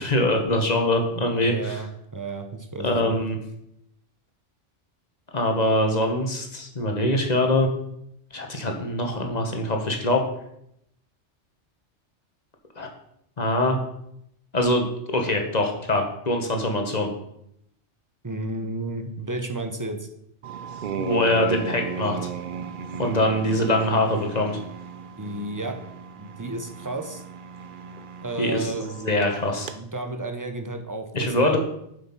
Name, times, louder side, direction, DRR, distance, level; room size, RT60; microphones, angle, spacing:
voice 1, 0.0-1.8 2.8-3.4 5.3-7.7 8.3-10.2 12.8-12.9 13.4-13.8 14.5-14.8 15.1-17.1 21.0-22.2 23.0-24.6 28.4-29.7 31.1-31.6, left 1 dB, 35° left, 3 dB, 1.5 m, -23 dB
voice 2, 1.5-3.2 18.2-20.1 25.2-25.7 26.2-27.2 28.2-28.9 29.8-31.6, right 2 dB, 20° right, 5 dB, 0.9 m, -32 dB
sound 1, 20.4-29.8, right 6 dB, 55° right, 0.7 m, -36 dB
7.3 x 7.1 x 5.6 m, 0.77 s
omnidirectional pair, 1.2 m